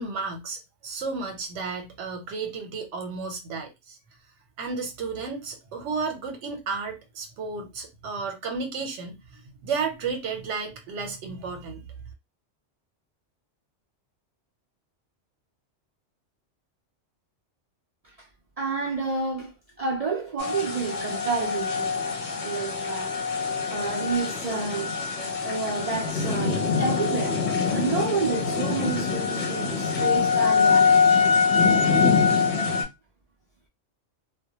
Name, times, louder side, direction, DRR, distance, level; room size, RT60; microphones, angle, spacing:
voice 1, 0.0-4.0 4.6-11.8, right 4 dB, 85° right, 1.0 m, -33 dB
voice 2, 18.6-19.5 19.8-22.2 22.4-23.1 23.7-25.0 25.4-27.4 27.7-31.0, right 4 dB, 60° right, 0.3 m, -29 dB
sound 1, 20.4-32.8, left 5 dB, 50° left, 0.7 m, -24 dB
2.1 x 2.1 x 2.8 m
omnidirectional pair, 1.2 m